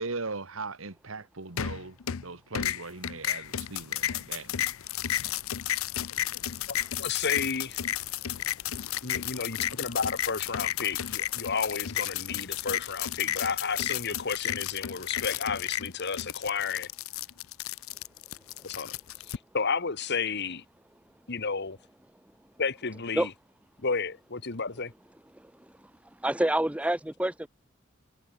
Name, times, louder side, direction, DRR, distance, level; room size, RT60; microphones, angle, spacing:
voice 1, 0.0-2.0 2.2-4.5, right 3 dB, 75° right, 1.9 m, -38 dB
sound 1, 1.6-2.3 2.5-19.4, left 11 dB, 90° left, 0.6 m, -33 dB
voice 2, 6.7-7.8 9.0-16.9 18.6-19.0 19.3-20.6 21.3-21.8 22.6-23.3 23.8-24.9, left 5 dB, 55° left, 1.8 m, -32 dB
voice 3, 26.2-27.5, right 1 dB, 5° right, 0.7 m, -27 dB
head